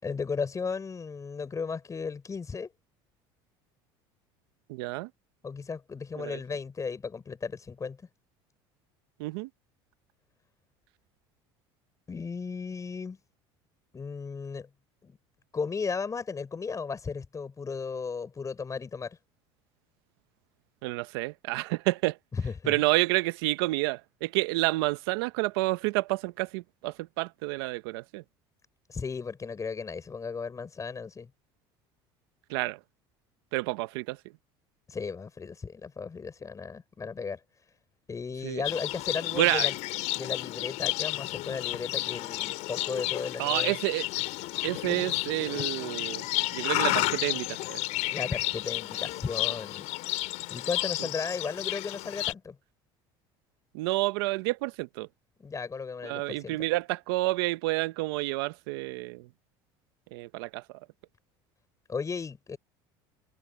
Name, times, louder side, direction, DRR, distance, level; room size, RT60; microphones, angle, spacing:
voice 1, 0.0-2.7 5.4-8.0 12.1-13.2 13.9-14.7 15.0-15.2 15.5-19.2 22.3-22.7 28.9-31.3 34.9-37.4 38.1-39.8 40.1-43.7 48.1-50.1 50.5-52.5 55.4-56.6 61.9-62.6, left 5 dB, 25° left, 6.7 m, -35 dB
voice 2, 4.7-5.1 6.2-6.4 9.2-9.5 20.8-22.2 22.7-28.2 32.5-32.8 33.5-34.2 38.4-38.6 39.3-39.7 43.4-44.1 44.6-46.2 46.5-47.8 53.7-55.1 56.0-59.3 60.1-60.6, right 21 dB, 80° right, 1.2 m, -29 dB
Livestock farm animals working animals, 38.6-52.3, left 20 dB, 70° left, 5.5 m, -31 dB
supercardioid pair, 95°, 13 cm